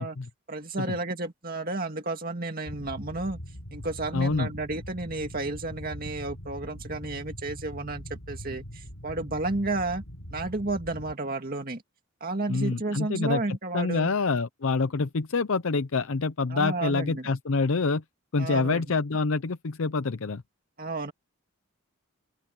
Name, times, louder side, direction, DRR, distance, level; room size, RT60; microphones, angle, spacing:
voice 1, 0.5-3.4 3.7-10.0 10.3-11.8 12.2-14.1 16.5-17.3 18.4-18.8 20.8-21.1, right 2 dB, 40° right, 2.1 m, -32 dB
sound 1, 2.6-11.1, equal, 85° left, 5.6 m, -42 dB
voice 2, 4.1-4.5 12.5-18.0 18.3-20.4, left 4 dB, 65° left, 0.6 m, -27 dB
open air
head